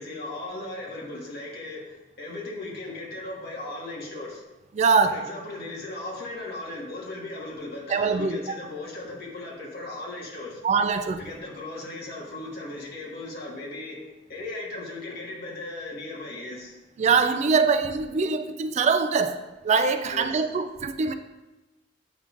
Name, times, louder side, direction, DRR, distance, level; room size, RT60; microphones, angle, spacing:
voice 1, 0.0-4.4 5.0-10.6 11.2-14.0 14.3-16.8 20.1-20.4, left 2 dB, 60° left, -3 dB, 1.6 m, -37 dB
voice 2, 4.8-5.2 7.9-8.6 10.6-11.2 17.0-21.1, right 5 dB, 40° right, 9 dB, 0.3 m, -23 dB
8.2 x 5.2 x 2.5 m, 1.1 s
head